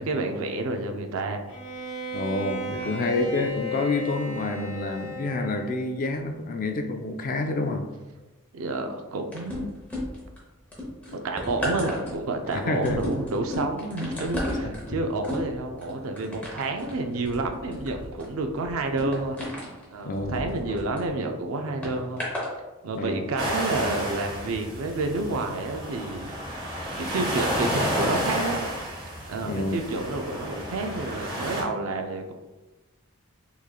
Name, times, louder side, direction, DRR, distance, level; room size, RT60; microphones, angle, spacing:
voice 1, 0.0-1.4 2.8-3.0 8.5-9.7 11.1-19.4 19.9-22.2 22.8-28.7 29.3-32.3, right 2 dB, 75° right, 5 dB, 0.4 m, -30 dB
Bowed string instrument, 1.5-5.9, equal, 80° left, 0.9 m, -35 dB
voice 2, 2.1-7.9 12.5-13.0 14.6-14.7 20.0-20.8 22.9-23.3 29.4-29.8, left 2 dB, 40° left, 5 dB, 0.3 m, -28 dB
sound 1, 9.3-10.4 10.7-21.1 21.8-22.5 23.2-23.4, left 1 dB, 5° left, 0.8 m, -34 dB
sound 2, 23.4-31.6, equal, 45° right, 1.1 m, -31 dB
3.6 x 3.1 x 2.3 m, 1.1 s
head